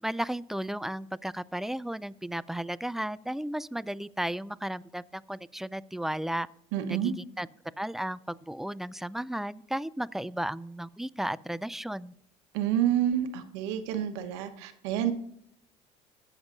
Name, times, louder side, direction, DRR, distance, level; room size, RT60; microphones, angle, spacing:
voice 1, 0.0-6.5 6.9-7.5 7.8-12.1, right 1 dB, 5° right, 18 dB, 0.3 m, -34 dB
voice 2, 6.7-7.1 12.5-15.1, right 10 dB, 85° right, 8 dB, 1.2 m, -28 dB
16.0 x 7.2 x 2.6 m, 0.70 s
supercardioid pair, 95°, 14 cm